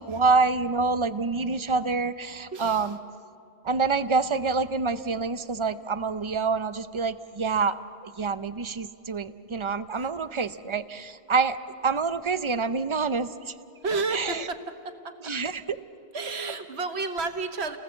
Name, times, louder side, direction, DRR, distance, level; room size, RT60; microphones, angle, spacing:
voice 1, 0.0-3.0 3.6-11.6 11.8-13.5 14.1-14.5 15.2-15.8, right 4 dB, 35° right, 12 dB, 0.6 m, -27 dB
voice 2, 2.5-2.9 9.9-10.1 13.8-15.1 16.1-17.8, right 3 dB, 70° right, 6 dB, 1.6 m, -31 dB
29.5 x 19.0 x 7.7 m, 2.6 s
omnidirectional pair, 1.1 m